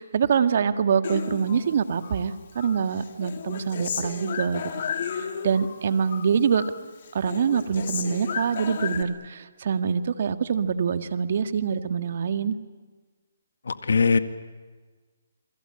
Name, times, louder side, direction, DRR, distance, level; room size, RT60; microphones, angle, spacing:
voice 1, 0.0-4.6 5.1-6.6 7.1-12.6, right 6 dB, 55° right, 10 dB, 1.7 m, -25 dB
Human voice, 1.0-2.2 2.6-5.8 6.0-6.8 7.0-9.0, left 7 dB, 50° left, 2.9 m, -33 dB
voice 2, 13.7-14.2, left 5 dB, 75° left, 10 dB, 1.8 m, -20 dB
28.0 x 21.5 x 8.8 m, 1.4 s
hypercardioid pair, 155°, 0 cm